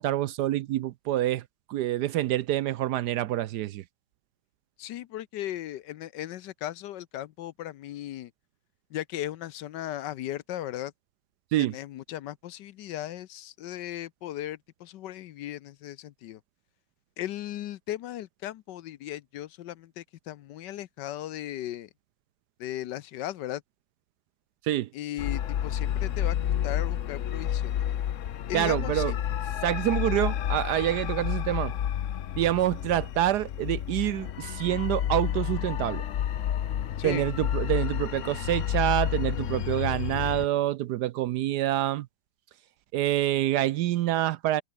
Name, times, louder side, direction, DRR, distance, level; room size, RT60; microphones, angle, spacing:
voice 1, 0.0-1.4 1.7-3.8 11.5-11.7 24.6-24.9 28.5-29.1 29.6-31.7 32.4-36.0 37.0-42.1 42.9-44.6, right 13 dB, 70° right, 1.0 m, -27 dB
voice 2, 4.8-8.3 8.9-10.9 11.6-16.4 17.2-21.9 22.6-23.6 24.9-27.9 28.5-29.2 37.0-37.2, left 13 dB, 75° left, 1.3 m, -37 dB
sound 1, 25.2-40.5, left 10 dB, 55° left, 0.9 m, -30 dB
omnidirectional pair, 2.0 m